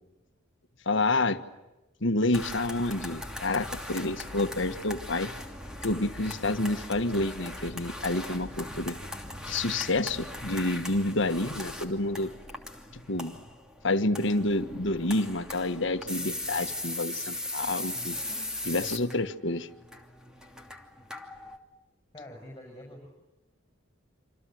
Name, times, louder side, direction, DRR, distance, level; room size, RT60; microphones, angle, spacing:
voice 1, 0.8-1.4 2.0-5.3 5.8-9.0 9.5-12.3 12.9-13.3 13.8-18.2 18.6-19.7, left 2 dB, 60° left, 9 dB, 1.6 m, -28 dB
sound 1, 2.3-21.6, left 1 dB, 5° right, 2.8 m, -39 dB
voice 2, 22.1-23.1, left 1 dB, 15° left, 1 dB, 7.2 m, -45 dB
27.5 x 27.5 x 7.9 m, 1.0 s
head